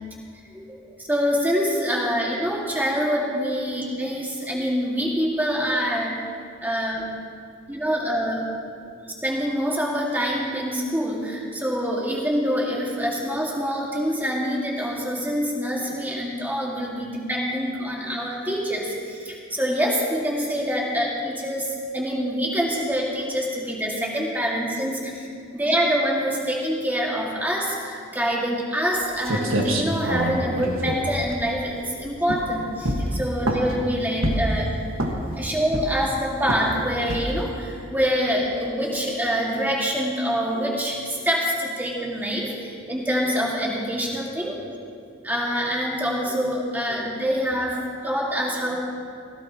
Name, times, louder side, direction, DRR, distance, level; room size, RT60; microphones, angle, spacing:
voice 1, 1.1-6.2 6.6-7.1 7.7-8.5 8.8-8.9 9.2-21.7 21.9-34.8 35.4-44.6 45.2-48.8, equal, 10° right, -3 dB, 2.0 m, -25 dB
sound 1, 28.9-29.0 29.2-31.8 32.2-32.5 32.8-33.8 34.2-34.6 34.9-35.4 35.7-36.1 36.5-36.7 37.1-37.4, right 1 dB, 85° right, 1.7 m, -26 dB
16.5 x 16.5 x 3.0 m, 2.3 s
head